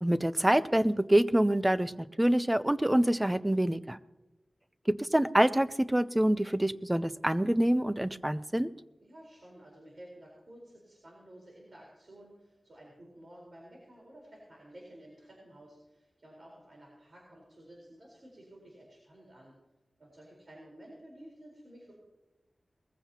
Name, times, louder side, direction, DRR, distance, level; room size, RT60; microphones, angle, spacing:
voice 1, 0.0-4.0 4.9-8.7, right 1 dB, 15° right, 14 dB, 0.5 m, -26 dB
voice 2, 9.0-19.5 20.0-21.9, right 1 dB, 55° right, -3 dB, 4.3 m, -53 dB
20.5 x 15.0 x 2.9 m, 1.0 s
wide cardioid pair, 70°, 0 cm